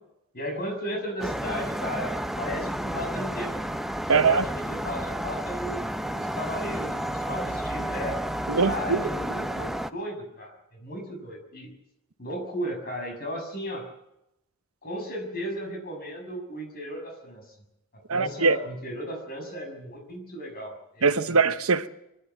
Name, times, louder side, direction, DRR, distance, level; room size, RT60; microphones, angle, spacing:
voice 1, 0.3-3.5 4.1-8.2 8.6-11.7 12.2-13.9 14.8-17.4 18.1-21.4, equal, 45° left, 6.5 m, -35 dB
sound 1, 1.2-9.9, equal, ahead, 0.7 m, -31 dB
voice 2, 4.1-4.4 8.5-9.0 18.1-18.6 21.0-21.9, right 4 dB, 90° right, 1.0 m, -22 dB
25.0 x 11.5 x 9.3 m
head